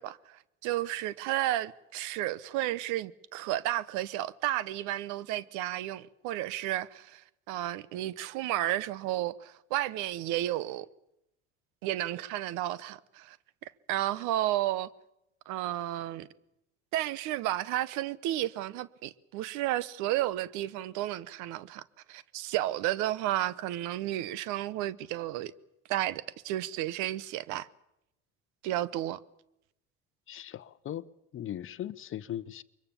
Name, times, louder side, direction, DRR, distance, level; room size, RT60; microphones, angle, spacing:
voice 1, 0.0-10.9 11.8-13.4 13.6-14.9 15.5-16.3 16.9-21.8 22.1-25.5 25.9-27.7 28.6-29.2, right 14 dB, 65° right, 0.9 m, -32 dB
voice 2, 30.3-31.0 31.3-32.6, left 11 dB, 40° left, 0.9 m, -38 dB
23.0 x 22.5 x 7.1 m
hypercardioid pair, 80°, 32 cm